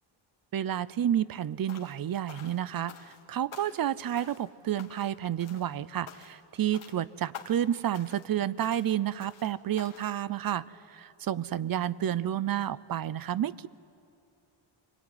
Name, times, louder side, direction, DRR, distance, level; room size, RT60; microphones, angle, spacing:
voice 1, 0.5-13.7, right 10 dB, 45° right, 19 dB, 0.6 m, -30 dB
sound 1, 1.7-2.0 2.3-3.2 3.5-3.9 4.1-4.5 4.8-5.1 5.4-5.7 6.1-6.4 6.7-7.0 7.3-7.7 7.9-8.3 8.6-8.9 9.2-9.5 9.8-10.1, left 8 dB, 75° left, 2.2 m, -48 dB
24.5 x 23.5 x 9.7 m, 2.6 s
wide cardioid pair, 140°, 49 cm